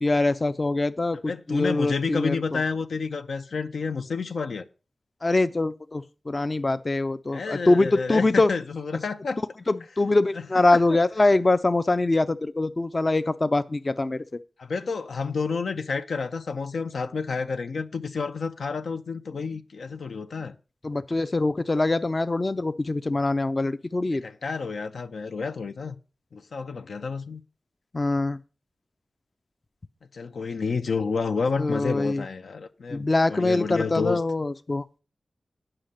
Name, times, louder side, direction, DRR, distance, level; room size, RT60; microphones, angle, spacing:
voice 1, 0.0-1.2 1.5-2.6 5.2-8.5 9.7-14.2 20.8-24.2 27.9-28.4 31.6-32.2 32.9-34.8, left 2 dB, 40° left, 0.5 m, -23 dB
voice 2, 1.3-4.6 7.3-9.4 10.7-11.0 14.6-20.6 24.1-26.0 26.3-27.4 30.1-34.2, left 4 dB, 80° left, 0.6 m, -30 dB
8.8 x 5.8 x 6.4 m
cardioid pair, 50°, 0 cm